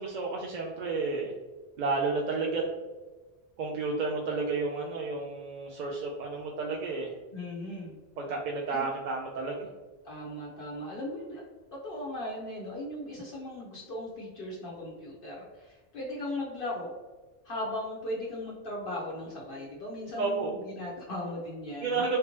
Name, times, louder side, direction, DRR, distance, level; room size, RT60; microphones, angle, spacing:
voice 1, 0.0-1.3 1.8-2.6 3.6-7.1 8.2-9.7 20.2-20.6 21.8-22.2, right 4 dB, 55° right, -2 dB, 0.6 m, -31 dB
voice 2, 7.3-8.0 8.7-8.9 10.0-17.0 17.4-22.0, left 1 dB, 60° left, -4 dB, 0.9 m, -38 dB
3.5 x 2.9 x 2.8 m, 1.3 s
omnidirectional pair, 1.0 m